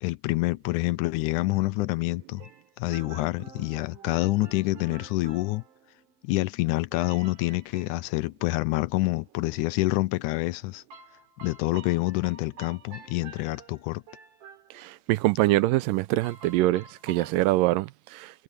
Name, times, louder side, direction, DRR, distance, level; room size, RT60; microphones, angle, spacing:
voice 1, 0.0-2.4 2.8-5.6 6.2-10.8 11.4-14.0, left 20 dB, 80° left, 1.9 m, -27 dB
sound 1, 2.4-6.2 6.9-8.1 10.9-15.0 16.2-17.4, right 5 dB, 65° right, 4.4 m, -48 dB
voice 2, 14.8-18.3, right 17 dB, 85° right, 2.2 m, -24 dB
omnidirectional pair, 4.0 m